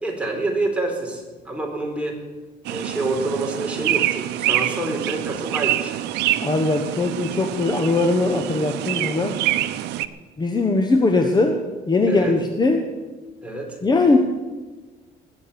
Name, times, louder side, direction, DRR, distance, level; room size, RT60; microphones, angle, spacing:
voice 1, 0.0-2.2 2.7-6.0 12.1-12.4 13.4-13.8, right 2 dB, 5° right, 0 dB, 4.3 m, -27 dB
sound 1, 2.6-10.1, right 14 dB, 85° right, 0.7 m, -26 dB
voice 2, 6.4-9.4 10.4-11.6 11.9-12.8 13.8-14.2, left 3 dB, 25° left, 5 dB, 1.2 m, -20 dB
20.5 x 7.7 x 7.0 m, 1.3 s
cardioid pair, 110°, 17 cm